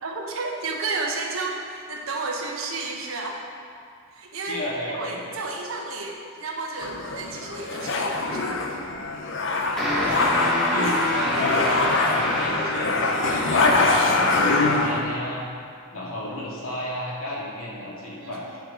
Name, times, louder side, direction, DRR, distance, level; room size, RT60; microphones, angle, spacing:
voice 1, 0.0-3.4 4.1-8.6 18.2-18.4, right 3 dB, 75° right, 0 dB, 1.1 m, -32 dB
voice 2, 4.5-5.4 10.7-15.5 15.9-18.6, left 1 dB, 85° left, -5 dB, 2.1 m, -33 dB
sound 1, 6.8-15.0, left 3 dB, 60° left, 0.7 m, -24 dB
sound 2, 9.8-14.6, equal, 5° left, 1.4 m, -26 dB
10.5 x 4.7 x 4.9 m, 2.3 s
head